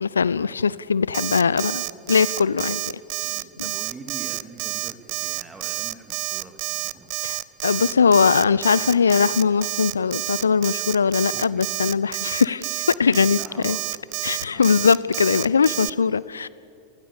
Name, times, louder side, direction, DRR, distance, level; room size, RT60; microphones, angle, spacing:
voice 1, 0.0-2.8 7.2-13.4 13.6-13.8 14.2-16.5, left 5 dB, 75° left, 20 dB, 0.5 m, -20 dB
Alarm, 1.1-15.9, right 23 dB, 45° right, 0.6 m, -29 dB
voice 2, 3.2-7.1 11.3-11.6 13.4-14.8 15.3-15.5, right 4 dB, 15° right, 5 dB, 2.8 m, -44 dB
29.5 x 19.5 x 7.0 m, 2.6 s
figure-of-eight pair, 90°, 0 cm